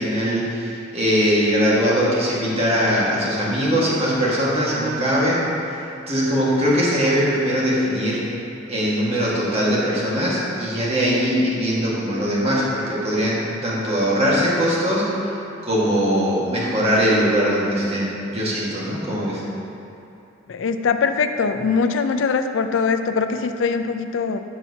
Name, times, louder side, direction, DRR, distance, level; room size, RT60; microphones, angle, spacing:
voice 1, 0.0-5.8 6.1-8.3 8.7-15.3 15.6-19.4, equal, 30° right, -6 dB, 1.6 m, -21 dB
voice 2, 20.5-24.4, left 5 dB, 70° left, 8 dB, 0.4 m, -22 dB
12.5 x 5.8 x 2.8 m, 2.8 s
head